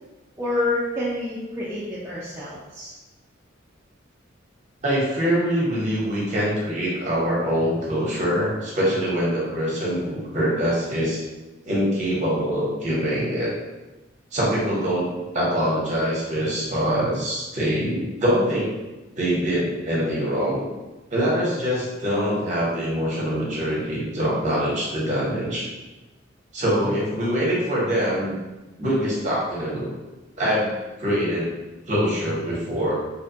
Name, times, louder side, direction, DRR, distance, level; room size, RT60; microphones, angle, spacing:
voice 1, 0.4-2.9, left 2 dB, 15° right, -9 dB, 0.3 m, -28 dB
voice 2, 4.8-11.2 11.6-13.5 14.3-15.1 15.3-18.7 19.1-20.7 21.1-25.7 26.5-28.4 28.8-29.9 30.4-30.7 31.0-31.5 31.9-32.9, equal, 40° right, -6 dB, 0.8 m, -24 dB
2.8 x 2.2 x 2.7 m, 1.1 s
head